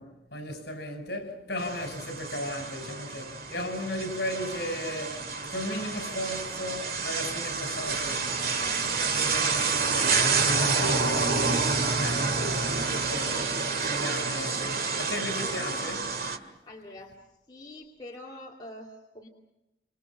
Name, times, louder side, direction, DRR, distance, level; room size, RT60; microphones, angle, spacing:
voice 1, 0.0-16.2, left 1 dB, 65° left, 5.5 m, -36 dB
sound 1, 1.6-16.4, right 4 dB, 55° right, 2.2 m, -28 dB
voice 2, 9.0-9.7 10.9-11.4 14.2-14.4 16.6-17.1 17.5-19.3, left 1 dB, 25° left, 2.5 m, -46 dB
29.0 x 26.5 x 5.9 m
head